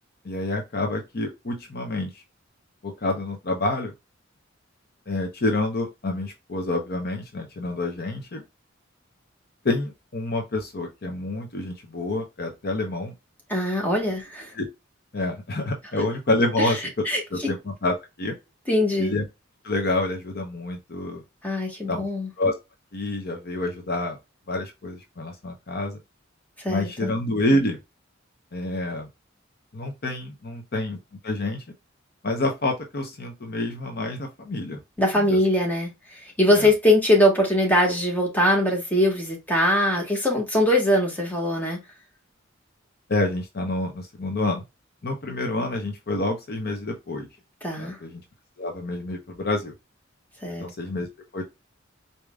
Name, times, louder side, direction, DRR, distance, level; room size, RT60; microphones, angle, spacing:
voice 1, 0.2-2.2 2.8-3.9 5.1-8.4 9.6-13.1 14.5-14.7 15.1-17.0 17.3-18.3 19.0-19.2 19.6-21.2 21.9-22.1 22.4-22.5 22.9-24.2 24.5-26.0 26.7-27.8 28.5-29.1 29.7-31.0 31.2-31.6 32.2-34.8 35.1-35.4 36.5-36.7 43.1-44.6 45.0-47.3 47.8-48.2 48.6-49.7 50.6-51.1 51.3-51.4, left 2 dB, 50° left, 0.8 m, -28 dB
voice 2, 13.5-14.5 16.6-16.7 17.0-17.5 18.7-19.1 21.4-22.3 26.6-27.1 35.0-41.8 47.6-48.0 50.4-50.7, left 1 dB, 10° left, 1.6 m, -22 dB
4.9 x 2.8 x 2.3 m
head